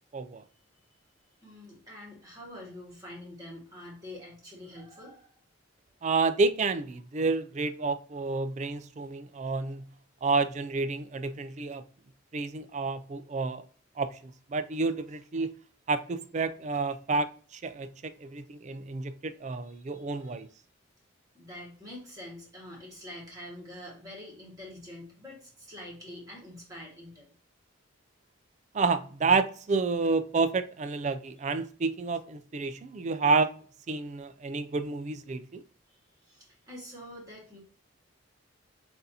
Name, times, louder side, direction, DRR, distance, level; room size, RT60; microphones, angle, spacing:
voice 1, 0.1-0.4 6.0-9.8 10.2-11.8 12.3-13.6 14.0-15.5 15.9-17.3 17.5-20.5 28.7-33.5 33.9-35.6, right 4 dB, 35° right, 0.3 m, -29 dB
voice 2, 1.4-5.3 19.6-20.4 21.3-27.3 31.4-31.5 35.9-37.6, left 1 dB, 20° right, 1.6 m, -46 dB
6.3 x 2.6 x 2.7 m
head